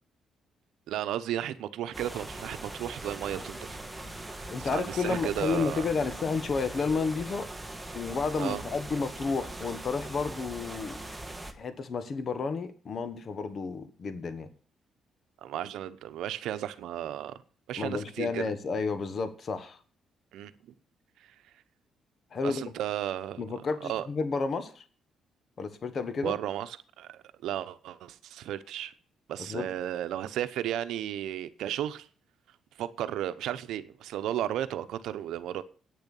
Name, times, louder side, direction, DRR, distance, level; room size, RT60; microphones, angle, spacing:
voice 1, 0.9-5.9 8.4-8.6 15.4-17.3 17.7-18.5 20.3-20.5 22.4-23.4 23.8-24.1 26.2-28.9 29.3-32.1 32.8-35.6, right 11 dB, 85° right, 0.9 m, -34 dB
sound 1, 1.9-11.5, right 1 dB, 5° right, 1.4 m, -41 dB
voice 2, 4.5-7.5 7.9-11.0 11.5-14.5 17.8-19.8 22.3-22.6 23.4-24.8 25.6-26.4 29.5-29.7, left 4 dB, 50° left, 1.3 m, -31 dB
9.3 x 6.9 x 8.4 m
cardioid pair, 90°, 0 cm